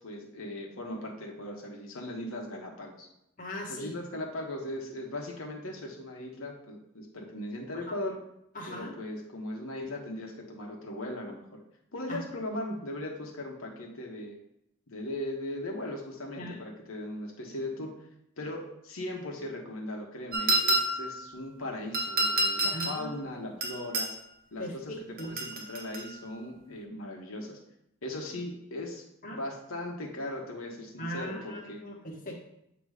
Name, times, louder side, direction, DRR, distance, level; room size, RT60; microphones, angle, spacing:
voice 1, 0.0-3.1 3.7-8.2 8.7-11.4 11.9-14.4 14.9-17.9 18.4-24.1 24.5-27.6 28.0-31.8, left 1 dB, 80° left, 0 dB, 1.2 m, -38 dB
voice 2, 3.4-3.9 8.5-8.9 12.1-12.2 16.4-16.6 22.7-23.1 23.4-23.5 24.6-25.3 29.2-29.4 31.0-32.4, equal, 40° left, -2 dB, 1.2 m, -39 dB
sound 1, 20.3-21.2 21.9-23.0 23.6-24.1 25.2-26.1, right 2 dB, 45° right, 1.0 m, -28 dB
7.9 x 3.0 x 4.9 m, 0.80 s
head